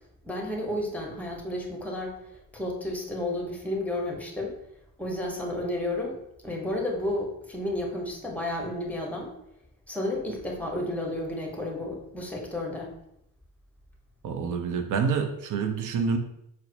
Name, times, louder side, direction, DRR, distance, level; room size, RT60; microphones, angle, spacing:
voice 1, 0.2-2.2 2.5-4.6 5.0-6.2 6.4-9.3 9.9-12.9, left 1 dB, 5° left, 0 dB, 0.8 m, -32 dB
voice 2, 14.2-16.2, right 5 dB, 45° right, 6 dB, 0.5 m, -27 dB
4.0 x 2.1 x 2.8 m, 0.80 s
hypercardioid pair, 40°, 43 cm